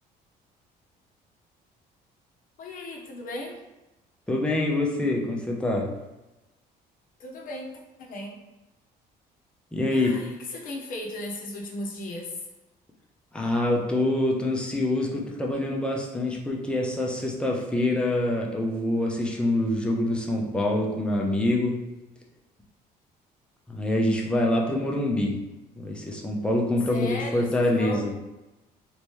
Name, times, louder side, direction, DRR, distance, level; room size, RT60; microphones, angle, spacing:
voice 1, 2.6-3.6 7.2-8.4 9.9-12.4 26.9-28.1, left 1 dB, 55° left, 0 dB, 0.9 m, -36 dB
voice 2, 4.3-5.9 9.7-10.2 13.3-21.8 23.7-25.5 25.8-28.1, left 1 dB, 5° left, -1 dB, 0.6 m, -25 dB
3.2 x 3.0 x 3.1 m, 1.0 s
cardioid pair, 110°, 17 cm